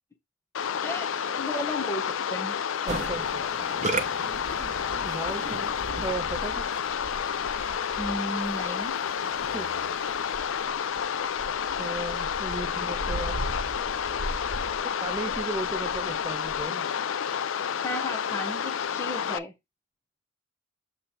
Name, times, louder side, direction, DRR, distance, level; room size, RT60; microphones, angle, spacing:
sound 1, 0.5-19.4, left 7 dB, 70° left, 0.4 m, -30 dB
voice 1, 0.8-2.6 8.0-9.0 17.8-19.5, left 1 dB, 15° left, 0.9 m, -34 dB
voice 2, 2.8-3.3 5.0-6.7 9.5-9.7 11.8-13.4 15.0-16.9, right 2 dB, 15° right, 0.4 m, -35 dB
Musical instrument, 2.9-7.1, right 3 dB, 35° right, 1.0 m, -35 dB
sound 2, 4.3-16.6, right 1 dB, 80° right, 1.1 m, -41 dB
7.3 x 3.2 x 4.1 m
head